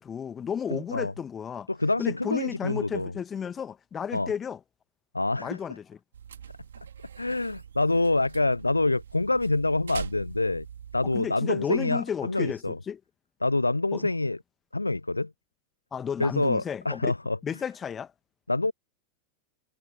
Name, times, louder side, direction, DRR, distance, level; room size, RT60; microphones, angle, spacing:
voice 1, 0.0-1.7 2.0-4.6 5.3-6.0 11.0-13.0 13.9-14.1 15.9-17.1 17.4-18.1, left 7 dB, 20° left, 1.7 m, -33 dB
voice 2, 0.7-1.1 1.7-3.1 4.1-4.3 5.1-5.6 7.2-10.7 10.9-12.8 13.4-14.4 14.7-15.3 16.2-17.4 18.5-18.7, left 2 dB, 85° left, 0.5 m, -26 dB
sound 1, 6.1-11.2, right 8 dB, 65° right, 3.7 m, -43 dB
figure-of-eight pair, 90°, 0 cm